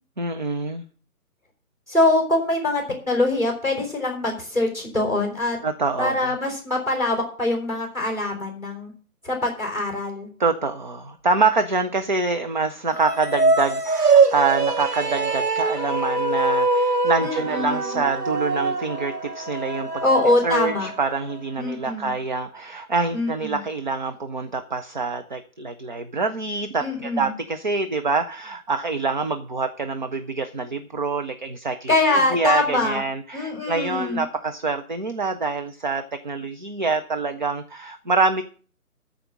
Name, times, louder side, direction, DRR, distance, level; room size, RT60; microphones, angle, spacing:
voice 1, 0.2-0.8 5.6-6.3 10.4-20.0 20.4-31.9 32.3-38.4, right 4 dB, 30° right, 7 dB, 0.7 m, -26 dB
voice 2, 1.9-5.6 6.0-8.9 9.2-10.3 17.2-18.0 20.0-20.9 21.6-22.1 23.1-23.6 26.8-27.3 31.9-33.0 33.3-34.2, left 2 dB, 5° right, 2 dB, 4.0 m, -23 dB
sound 1, 12.9-21.4, right 3 dB, 90° right, 1.5 m, -23 dB
14.0 x 5.1 x 8.7 m, 0.41 s
figure-of-eight pair, 150°, 45 cm